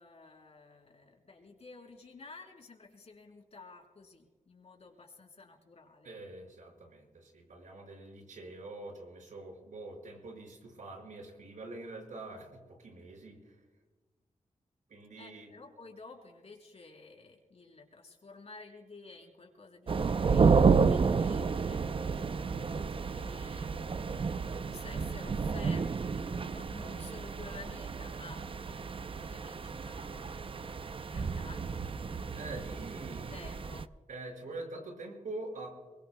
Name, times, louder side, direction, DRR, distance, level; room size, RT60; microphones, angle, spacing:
voice 1, 0.0-6.2 15.2-22.5 22.8-24.0 24.5-31.8 32.1-32.6 33.2-33.9, left 3 dB, 55° left, 2 dB, 3.7 m, -52 dB
voice 2, 6.0-13.6 14.9-15.5 29.8-30.7 32.4-33.4 34.1-35.7, right 2 dB, 80° right, 1 dB, 5.6 m, -45 dB
sound 1, 19.9-33.8, right 5 dB, 45° right, 0.6 m, -31 dB
23.5 x 22.5 x 2.3 m, 1.3 s
wide cardioid pair, 90°, 13 cm